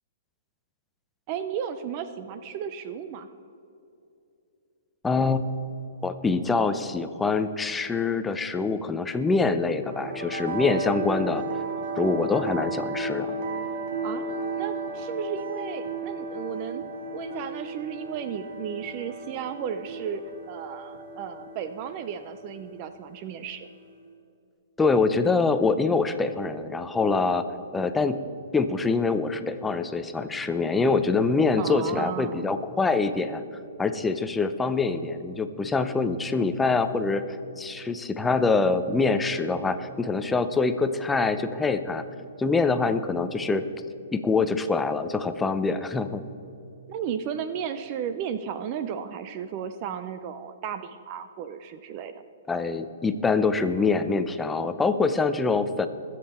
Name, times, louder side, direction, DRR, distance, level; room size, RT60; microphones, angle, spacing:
voice 1, 1.3-3.3 14.0-14.2 14.6-16.8 17.1-20.2 20.5-23.7 31.6-32.4 46.9-52.1, right 8 dB, 35° right, 10 dB, 0.5 m, -34 dB
voice 2, 5.0-5.4 6.0-11.4 12.0-13.3 24.8-27.4 27.7-28.2 28.5-33.4 33.8-37.2 37.6-42.0 42.4-43.6 44.1-46.2 52.5-55.9, left 4 dB, 10° left, 10 dB, 0.5 m, -25 dB
sound 1, 9.8-23.9, right 2 dB, 55° right, 2.3 m, -34 dB
20.5 x 7.6 x 4.3 m, 2.7 s
hypercardioid pair, 150°, 0 cm